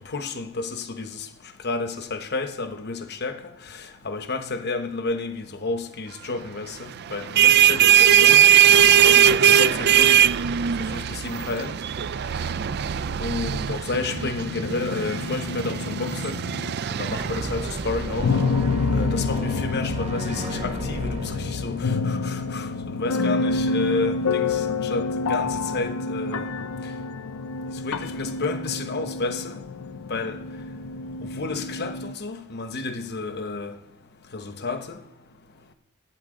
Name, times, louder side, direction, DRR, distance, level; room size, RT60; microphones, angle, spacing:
voice 1, 0.1-1.3 1.6-3.4 4.0-10.2 10.9-11.7 13.2-16.4 16.9-18.4 18.9-22.7 23.0-26.5 27.8-29.6 30.1-30.4 31.4-33.7 34.3-35.0, left 3 dB, 45° left, 0.9 m, -31 dB
sound 1, 7.1-18.4, right 9 dB, 45° right, 0.4 m, -20 dB
sound 2, 14.1-16.7 18.2-32.1, left 4 dB, 65° left, 0.6 m, -28 dB
sound 3, 16.9-23.2, right 1 dB, 30° right, 1.3 m, -32 dB
23.5 x 9.4 x 3.8 m
head